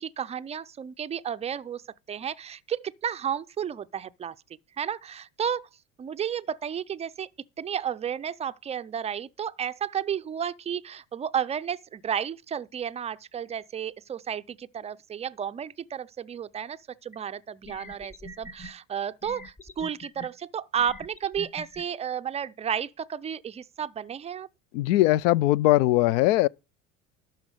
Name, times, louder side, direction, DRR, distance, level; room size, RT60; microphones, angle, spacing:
voice 1, 0.0-1.8 2.1-4.3 4.8-5.7 6.0-7.3 7.6-24.5, right 8 dB, 15° right, 0.4 m, -32 dB
sound 1, 17.1-17.2 17.6-18.7 19.2-20.3 20.8-21.8, left 1 dB, 15° left, 1.0 m, -43 dB
voice 2, 24.7-26.5, left 16 dB, 70° left, 0.5 m, -20 dB
12.0 x 4.5 x 6.5 m
hypercardioid pair, 75°, 41 cm